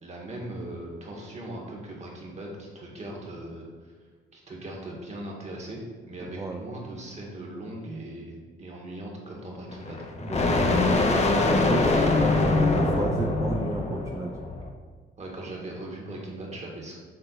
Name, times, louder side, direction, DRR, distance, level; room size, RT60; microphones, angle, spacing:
voice 1, 0.0-3.9 4.3-10.0 11.2-11.6 15.2-17.0, right 1 dB, 35° right, -2 dB, 1.7 m, -39 dB
sound 1, 9.7-14.7, left 2 dB, 35° left, 0.8 m, -23 dB
voice 2, 10.2-14.4, right 2 dB, 15° right, 2 dB, 0.4 m, -33 dB
6.6 x 3.7 x 4.0 m, 1.5 s
cardioid pair, 90°, 20 cm